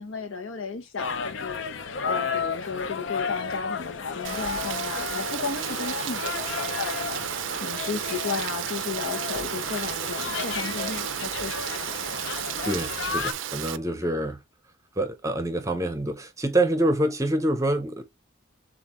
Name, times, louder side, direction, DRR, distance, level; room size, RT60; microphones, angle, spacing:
voice 1, 0.0-12.2, left 4 dB, 85° left, 0.9 m, -34 dB
sound 1, 1.0-13.3, left 5 dB, 65° left, 0.5 m, -33 dB
Rain, 4.2-13.8, right 10 dB, 70° right, 0.4 m, -33 dB
voice 2, 12.6-14.4 15.0-18.0, right 1 dB, 15° right, 0.6 m, -26 dB
7.1 x 2.5 x 3.0 m
head